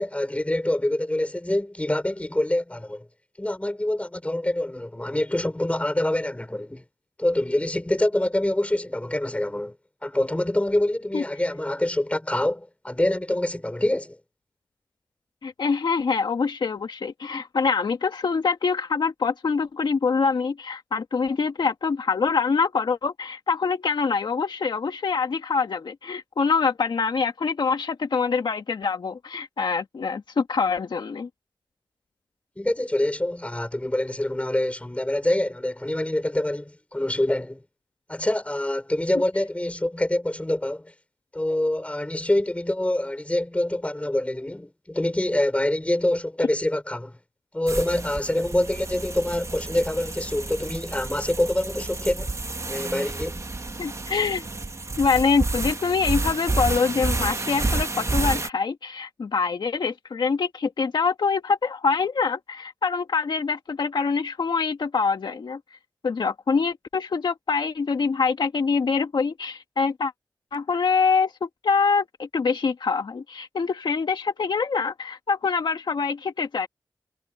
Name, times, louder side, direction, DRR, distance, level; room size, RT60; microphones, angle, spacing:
voice 1, 0.0-3.1 3.4-6.8 7.2-9.8 10.0-14.2 32.6-37.6 38.1-40.9 41.3-47.1 47.5-52.3 52.7-53.4, left 1 dB, 15° left, 5.3 m, -25 dB
voice 2, 15.4-31.3 53.8-54.5 55.0-65.6 66.0-70.1 70.5-76.7, left 5 dB, 80° left, 2.0 m, -25 dB
sound 1, 47.7-58.5, right 3 dB, 40° right, 1.5 m, -30 dB
cardioid pair, 50°, 8 cm